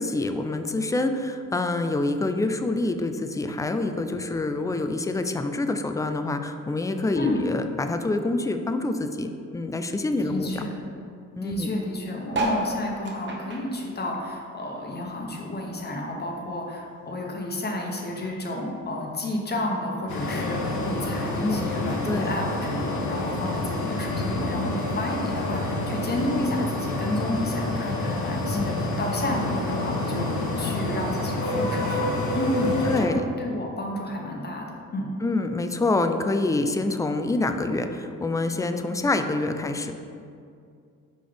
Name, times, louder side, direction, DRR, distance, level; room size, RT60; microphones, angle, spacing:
voice 1, 0.0-10.6 11.4-11.7 21.4-21.7 22.1-22.3 28.5-28.9 32.8-33.2 35.2-39.9, left 2 dB, 10° left, 7 dB, 0.3 m, -26 dB
voice 2, 10.2-10.8 11.4-34.7 34.9-35.1, left 1 dB, 35° left, 0 dB, 1.1 m, -31 dB
sound 1, 12.3-15.0 15.4-16.9 17.4-17.5 17.7-17.8 17.9-18.3 19.1-19.2, right 2 dB, 40° right, 1.0 m, -32 dB
sound 2, 20.1-33.0, left 2 dB, 75° left, 1.1 m, -28 dB
5.1 x 3.9 x 5.1 m, 2.3 s
cardioid pair, 90°, 30 cm